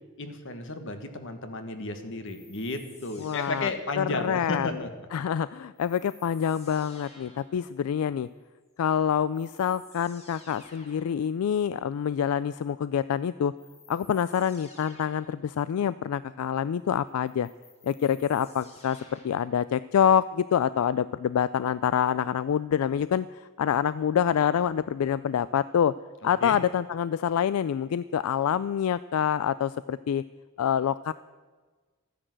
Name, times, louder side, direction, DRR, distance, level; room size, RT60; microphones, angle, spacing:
voice 1, 0.2-4.9 26.4-26.6, left 2 dB, 60° left, 7 dB, 1.5 m, -33 dB
sound 1, 2.2-4.3 5.8-7.6 8.9-9.0 9.3-11.2 13.6-15.4 17.1-19.5, left 3 dB, 30° left, 2.2 m, -53 dB
voice 2, 3.2-3.7 4.0-4.7 5.1-8.3 8.8-13.5 13.9-17.5 17.8-25.9 26.2-30.2 30.6-31.1, left 8 dB, 80° left, 16 dB, 0.3 m, -26 dB
13.5 x 10.0 x 7.7 m, 1.4 s
head